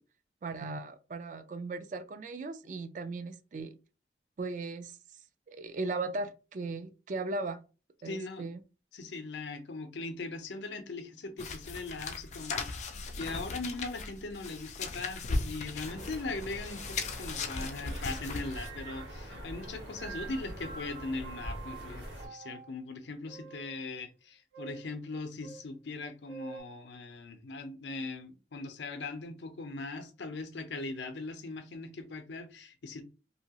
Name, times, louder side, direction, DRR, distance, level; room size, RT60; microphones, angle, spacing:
voice 1, 0.4-3.8 4.4-5.0 5.5-7.6 8.0-8.6, right 3 dB, 45° right, 0.3 m, -37 dB
voice 2, 8.0-8.5 8.9-33.0, left 3 dB, 85° left, 0.6 m, -40 dB
sound 1, 11.4-18.7, left 3 dB, 40° left, 0.3 m, -37 dB
sound 2, 15.8-22.3, equal, 65° right, 1.4 m, -44 dB
sound 3, 18.1-19.2 19.6-22.8 23.2-23.9 24.5-24.9 25.4-25.6 26.3-26.6, right 6 dB, 80° right, 0.8 m, -48 dB
2.8 x 2.3 x 2.8 m
head